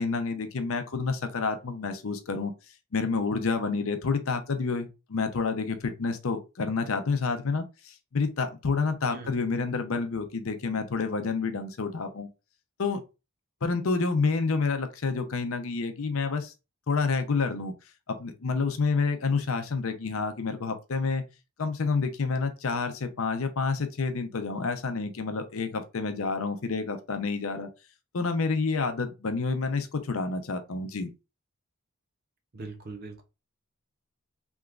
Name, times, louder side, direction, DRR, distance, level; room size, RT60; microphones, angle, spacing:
voice 1, 0.0-2.5 2.9-12.3 12.8-13.0 13.6-16.5 16.9-17.7 18.1-21.2 21.6-27.7 28.1-31.1, left 4 dB, 70° left, 0.6 m, -29 dB
voice 2, 32.5-33.2, right 3 dB, 45° right, 0.6 m, -40 dB
3.5 x 3.0 x 2.4 m
head